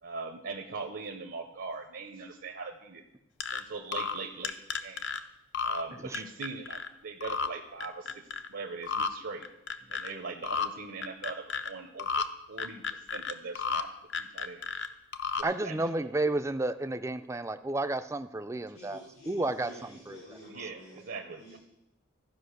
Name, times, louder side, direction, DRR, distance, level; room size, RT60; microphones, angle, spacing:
voice 1, 0.0-3.0 3.5-5.0 5.6-8.2 8.5-9.5 9.9-13.9 14.2-14.7 15.4-16.1 20.5-21.6, right 4 dB, 65° right, 5 dB, 0.8 m, -41 dB
sound 1, 3.4-3.6 3.9-4.2 4.4-5.2 5.5-5.8 6.1-6.9 7.2-7.5 7.8-8.5 8.8-9.1 9.4-10.1 10.4-10.7 11.0-11.7 12.0-12.3 12.6-13.8 14.1-14.9 15.1-15.4, left 5 dB, 55° left, 0.6 m, -32 dB
voice 2, 15.4-19.0 19.3-19.7 20.1-20.2, right 2 dB, 15° right, 10 dB, 0.4 m, -31 dB
voice 3, 18.7-21.6, equal, 90° left, -6 dB, 3.6 m, -50 dB
14.0 x 5.3 x 6.5 m, 0.90 s
head